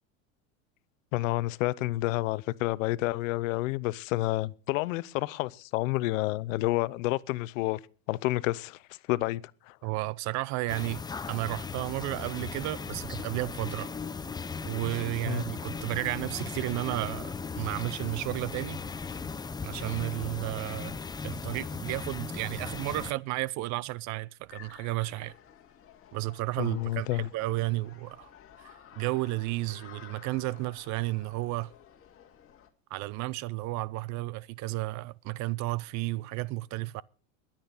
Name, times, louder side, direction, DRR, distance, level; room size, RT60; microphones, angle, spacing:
voice 1, 1.1-7.8 8.1-8.8 9.1-9.4 9.7-9.8 15.2-15.5 26.6-27.3, left 18 dB, 75° left, 0.8 m, -29 dB
voice 2, 9.8-11.0 11.3-13.9 14.6-18.8 19.6-21.0 21.2-25.3 26.1-28.3 28.6-31.7 32.9-37.0, right 19 dB, 45° right, 0.6 m, -33 dB
sound 1, 10.7-23.1, left 5 dB, 10° left, 0.6 m, -37 dB
sound 2, 24.5-32.7, left 9 dB, 35° left, 2.2 m, -53 dB
22.5 x 8.9 x 4.0 m
supercardioid pair, 115°, 40 cm